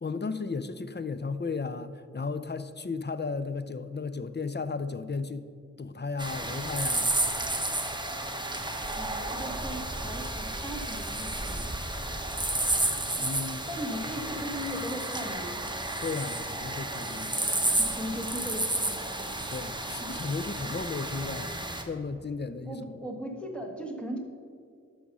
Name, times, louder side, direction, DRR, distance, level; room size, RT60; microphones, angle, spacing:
voice 1, 0.0-5.5 5.8-7.1 13.1-13.7 16.0-17.6 19.5-22.8, left 4 dB, 35° left, 12 dB, 0.5 m, -34 dB
sound 1, 6.2-21.8, right 1 dB, 15° right, 1.0 m, -32 dB
voice 2, 8.9-11.7 13.7-15.6 17.8-19.0 20.0-20.1 22.6-24.2, equal, 5° left, 1 dB, 1.6 m, -38 dB
12.5 x 5.0 x 5.4 m, 2.2 s
wide cardioid pair, 45°, 30 cm